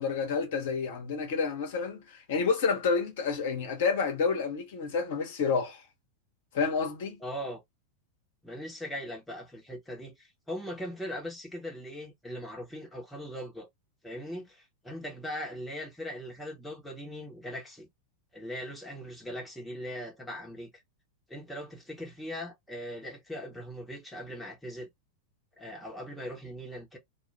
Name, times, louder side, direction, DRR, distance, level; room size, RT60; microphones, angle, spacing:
voice 1, 0.0-5.8 6.5-7.2, left 5 dB, 55° left, 1.0 m, -29 dB
voice 2, 7.2-7.6 8.4-13.7 14.0-17.9 18.3-20.7 21.3-24.9 25.6-27.0, equal, 5° left, 1.1 m, -40 dB
2.5 x 2.3 x 3.3 m
figure-of-eight pair, 90°, 0 cm